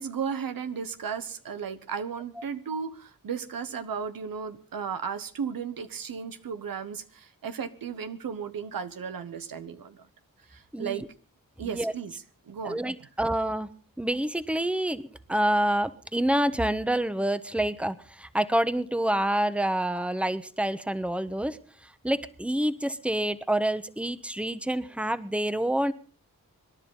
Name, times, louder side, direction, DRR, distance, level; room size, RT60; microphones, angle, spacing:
voice 1, 0.0-10.1 10.5-11.0 11.6-12.8, right 6 dB, 85° right, 1.1 m, -35 dB
voice 2, 10.7-11.1 11.6-11.9 12.6-13.7 14.0-15.0 15.3-21.6 22.0-25.9, right 1 dB, 5° right, 1.1 m, -27 dB
26.0 x 11.0 x 3.9 m
cardioid pair, 50°, 34 cm